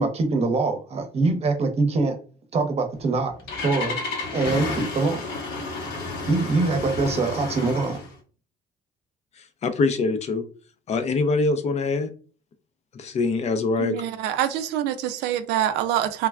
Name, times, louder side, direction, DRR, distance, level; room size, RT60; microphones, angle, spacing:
voice 1, 0.0-2.2 2.5-3.3 3.6-4.0 4.3-5.2 6.3-8.0, right 3 dB, 40° right, 0.8 m, -23 dB
Engine starting, 3.0-8.1, left 3 dB, 80° left, 0.9 m, -31 dB
voice 2, 9.6-10.4 10.9-12.1 12.9-13.9, left 3 dB, 40° left, 0.5 m, -23 dB
voice 3, 13.8-16.3, right 11 dB, 90° right, 0.4 m, -25 dB
3.2 x 2.2 x 2.3 m
cardioid pair, 110°, 17 cm